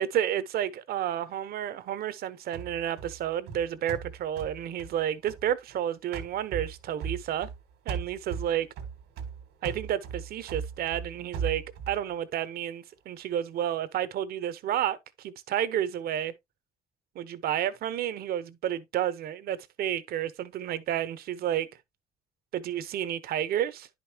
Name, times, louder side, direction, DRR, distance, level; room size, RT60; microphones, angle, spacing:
voice 1, 0.0-7.5 7.9-8.7 9.6-16.3 17.1-21.7 22.5-23.9, right 10 dB, 65° right, 0.9 m, -31 dB
sound 1, 2.5-5.8 6.1-7.6 7.9-12.0, right 6 dB, 85° right, 1.8 m, -38 dB
10.0 x 5.3 x 2.8 m
cardioid pair, 110°, 17 cm